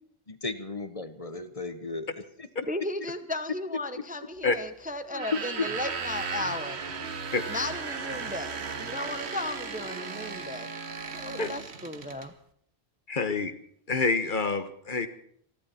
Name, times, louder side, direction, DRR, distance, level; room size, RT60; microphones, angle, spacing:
voice 1, 0.3-2.5 5.6-5.7, left 3 dB, 35° left, 11 dB, 1.0 m, -35 dB
voice 2, 2.7-6.8 7.5-10.7 11.2-12.3, left 2 dB, 10° right, 10 dB, 0.8 m, -35 dB
sound 1, 5.1-12.3, right 6 dB, 85° right, 1.4 m, -36 dB
Wind instrument woodwind instrument, 6.8-11.7, right 1 dB, 50° right, 2.4 m, -44 dB
voice 3, 13.1-13.5 13.9-15.1, left 3 dB, 50° left, 10 dB, 1.4 m, -27 dB
28.0 x 11.5 x 4.3 m, 0.63 s
omnidirectional pair, 1.1 m